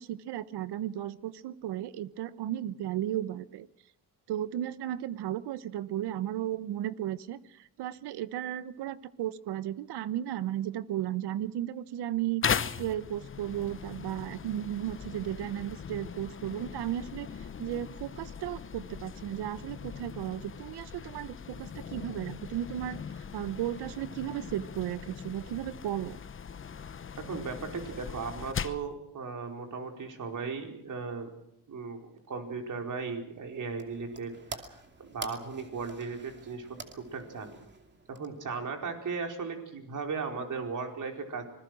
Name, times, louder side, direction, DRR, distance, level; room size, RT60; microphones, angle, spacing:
voice 1, 0.0-3.7 4.3-7.4 7.8-12.4 12.8-17.3 17.6-23.0 23.3-26.2, right 12 dB, 75° right, 16 dB, 1.1 m, -34 dB
sound 1, 12.4-28.9, left 7 dB, 30° left, 0.9 m, -39 dB
voice 2, 27.2-31.3 31.7-34.7 35.0-36.7 36.9-37.6 38.1-41.4, right 4 dB, 50° right, 3 dB, 4.8 m, -37 dB
sound 2, 33.3-38.7, right 3 dB, 25° right, 2.6 m, -47 dB
25.5 x 20.5 x 6.3 m, 0.76 s
cardioid pair, 95°, 40 cm